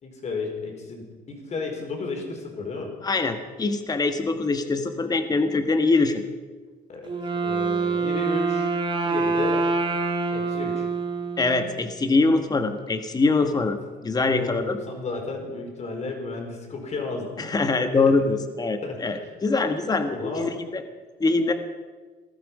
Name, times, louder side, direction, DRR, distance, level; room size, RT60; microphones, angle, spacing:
voice 1, 0.0-2.9 6.9-7.1 7.4-8.7 9.0-9.7 10.3-10.9 13.5-13.6 14.2-17.5 17.9-18.1 18.8-19.3 20.1-20.6, left 3 dB, 40° left, 2 dB, 4.4 m, -33 dB
voice 2, 3.0-6.2 11.4-13.8 14.0-14.8 17.4-20.8 21.2-21.5, left 3 dB, 25° left, 7 dB, 1.4 m, -23 dB
Wind instrument woodwind instrument, 7.0-11.9, right 4 dB, 30° right, 2.0 m, -26 dB
19.5 x 12.5 x 5.4 m, 1.3 s
cardioid pair, 110°, 17 cm